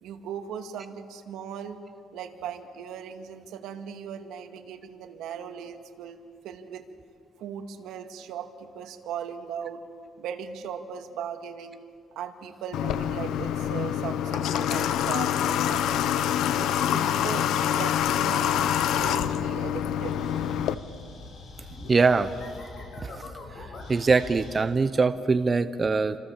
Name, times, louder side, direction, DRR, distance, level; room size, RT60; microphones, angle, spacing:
voice 1, 0.0-1.8 2.1-6.8 7.4-9.8 10.2-11.8 12.1-16.1 16.6-20.4, right 8 dB, 80° right, 6 dB, 2.2 m, -38 dB
Water / Water tap faucet, 12.7-20.7, left 10 dB, 75° left, 1.0 m, -26 dB
sound 1, 18.5-24.6, left 3 dB, 45° left, 5.1 m, -43 dB
voice 2, 21.9-22.3 23.0-23.2 23.9-26.2, right 4 dB, 20° right, 10 dB, 0.7 m, -22 dB
28.5 x 27.0 x 7.3 m, 2.4 s
cardioid pair, 165°, 0 cm